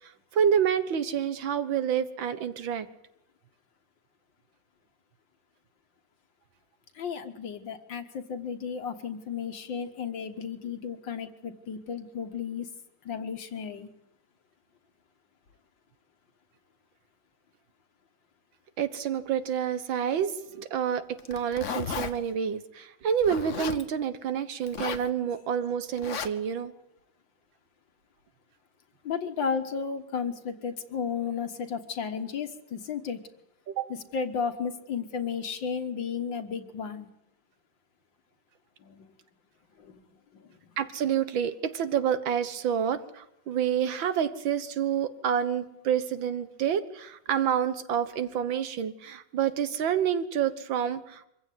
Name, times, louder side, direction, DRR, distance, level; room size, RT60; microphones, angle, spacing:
voice 1, 0.3-2.9 18.8-26.7 33.7-33.9 40.8-51.3, right 8 dB, 85° right, 12 dB, 2.0 m, -28 dB
voice 2, 7.0-12.7 13.0-13.9 29.0-33.2 33.9-37.1 38.8-39.1 39.8-40.0 40.3-40.5, left 6 dB, 75° left, 7 dB, 2.2 m, -33 dB
Zipper (clothing), 21.2-22.1 23.2-23.8 24.6-25.1 26.0-26.3, left 7 dB, 50° left, 1.1 m, -34 dB
24.5 x 15.5 x 9.4 m, 0.80 s
omnidirectional pair, 2.1 m